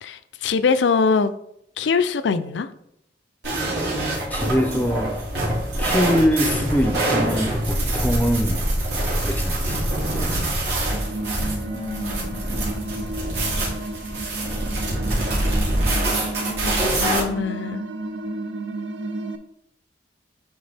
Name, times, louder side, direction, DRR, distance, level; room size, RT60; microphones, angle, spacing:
voice 1, 0.0-1.3 1.8-2.7 11.7-12.5 16.5-17.8, left 5 dB, 80° left, 13 dB, 0.4 m, -23 dB
sound 1, 3.4-17.2, right 1 dB, 65° right, 2.6 m, -25 dB
sound 2, 3.9-14.2, right 1 dB, 45° right, 1.2 m, -40 dB
voice 2, 4.3-5.1 5.8-8.6 9.2-9.8, equal, 10° left, 7 dB, 0.5 m, -23 dB
sound 3, 10.9-19.4, right 2 dB, 85° right, 0.6 m, -32 dB
9.6 x 3.5 x 3.4 m, 0.76 s
head